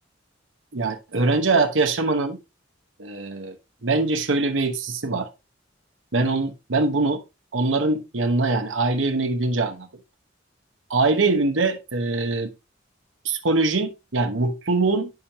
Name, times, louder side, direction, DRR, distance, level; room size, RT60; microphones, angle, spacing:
voice 1, 0.7-2.4 3.0-3.5 3.8-5.3 6.1-7.2 7.5-9.9 10.9-12.5 13.2-15.1, right 3 dB, 75° right, 1.1 m, -23 dB
8.8 x 6.0 x 3.0 m
head